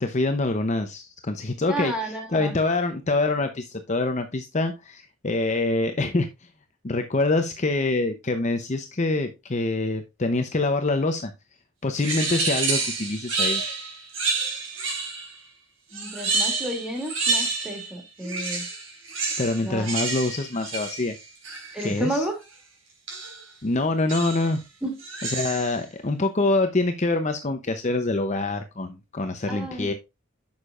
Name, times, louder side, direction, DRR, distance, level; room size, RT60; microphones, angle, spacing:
voice 1, 0.0-6.3 6.8-11.3 11.8-13.6 19.4-21.2 21.8-22.3 23.6-24.6 25.2-29.9, left 2 dB, 35° left, 0.7 m, -25 dB
voice 2, 1.7-2.5 15.9-18.6 19.6-20.0 21.7-22.4 24.8-25.0 29.5-29.9, right 1 dB, 5° right, 2.6 m, -31 dB
sound 1, 12.0-15.4 15.9-17.9 18.2-22.0 23.1-23.4 24.1-24.5 25.0-25.8, right 4 dB, 70° right, 4.0 m, -29 dB
9.4 x 6.6 x 2.5 m
head